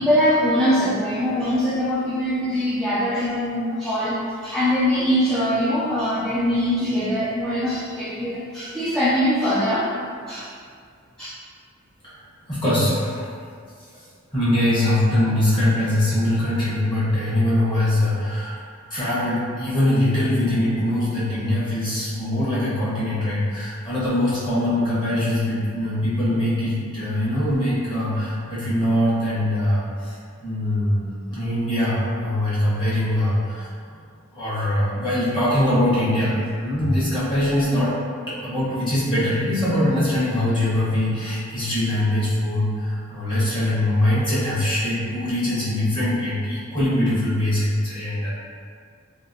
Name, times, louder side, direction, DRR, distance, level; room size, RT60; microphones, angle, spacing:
voice 1, 0.0-9.9 10.3-10.5 11.2-11.3, equal, ahead, -11 dB, 0.4 m, -22 dB
voice 2, 12.5-13.3 14.3-18.5 18.9-30.1 30.4-33.6 34.3-37.9 38.3-48.3, left 1 dB, 25° left, -10 dB, 1.0 m, -22 dB
2.9 x 2.9 x 2.7 m, 2.1 s
head